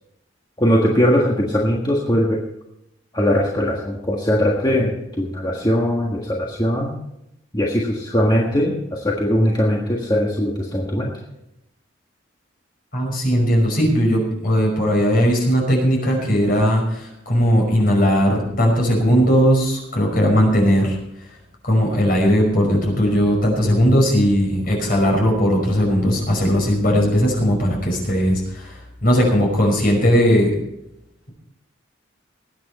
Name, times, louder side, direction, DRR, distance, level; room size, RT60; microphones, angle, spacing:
voice 1, 0.6-2.5 3.1-6.9 7.5-11.1, equal, 20° left, -2 dB, 1.6 m, -20 dB
voice 2, 12.9-21.0 21.6-30.5, equal, 50° left, 0 dB, 5.4 m, -18 dB
20.0 x 9.3 x 4.3 m, 0.82 s
head